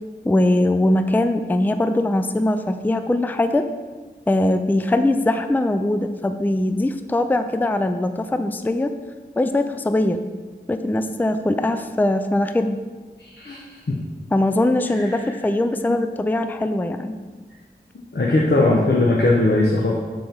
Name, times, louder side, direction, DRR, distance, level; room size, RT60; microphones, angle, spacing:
voice 1, 0.2-3.7 4.3-8.9 9.4-10.2 10.7-12.8 14.3-17.2, left 1 dB, 10° left, 9 dB, 0.4 m, -21 dB
voice 2, 13.2-14.0 14.9-15.4 15.8-16.0 18.1-19.9, left 2 dB, 60° left, -3 dB, 1.1 m, -20 dB
7.2 x 4.9 x 6.0 m, 1.4 s
wide cardioid pair, 60°, 19 cm